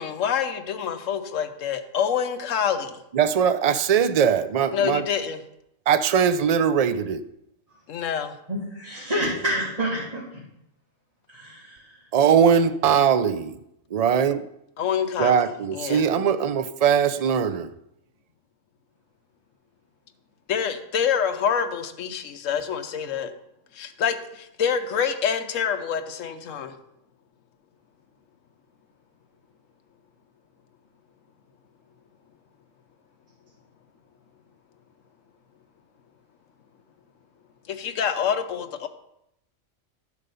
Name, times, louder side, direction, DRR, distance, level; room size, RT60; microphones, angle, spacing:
voice 1, 0.0-3.0 4.7-5.4 7.9-8.3 14.8-15.4 15.7-16.0 20.5-23.3 23.7-26.7 37.7-38.9, left 7 dB, 75° left, 8 dB, 1.2 m, -26 dB
voice 2, 3.1-5.0 5.9-7.2 12.1-13.6 13.9-14.5 15.2-17.7, right 7 dB, 65° right, 12 dB, 0.3 m, -21 dB
voice 3, 8.5-10.2 11.3-12.0, right 1 dB, 25° right, -10 dB, 3.2 m, -28 dB
11.5 x 5.3 x 6.8 m, 0.80 s
omnidirectional pair, 1.4 m